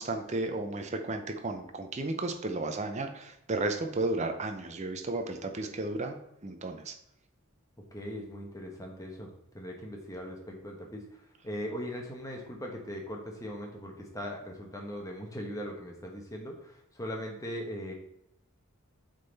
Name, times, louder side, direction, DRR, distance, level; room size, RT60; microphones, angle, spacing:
voice 1, 0.0-6.1 6.4-6.9, right 2 dB, 30° right, 6 dB, 0.6 m, -33 dB
voice 2, 7.9-9.3 9.5-11.0 11.4-17.9, equal, 15° left, 1 dB, 1.0 m, -39 dB
8.3 x 3.9 x 4.0 m, 0.81 s
head